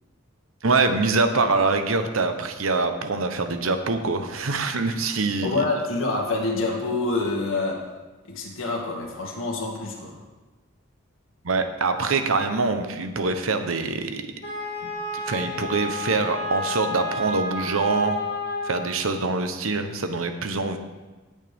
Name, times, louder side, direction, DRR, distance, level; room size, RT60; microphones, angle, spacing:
voice 1, 0.6-5.6 11.4-14.2 14.8-14.9 15.3-18.2 18.6-20.8, right 3 dB, 80° right, 8 dB, 0.9 m, -24 dB
voice 2, 5.4-7.8 8.2-10.2, left 3 dB, 75° left, -2 dB, 2.1 m, -26 dB
Wind instrument woodwind instrument, 14.4-19.0, left 2 dB, 45° left, 3.1 m, -31 dB
18.0 x 6.5 x 3.5 m, 1.2 s
head